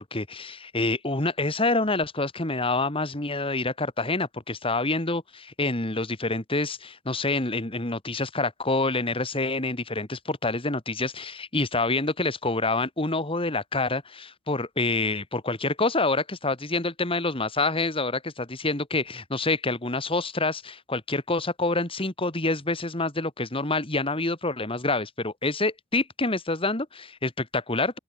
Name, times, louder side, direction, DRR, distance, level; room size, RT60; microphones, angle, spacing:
voice 1, 0.0-28.0, left 2 dB, 25° left, 2.2 m, -27 dB
open air
head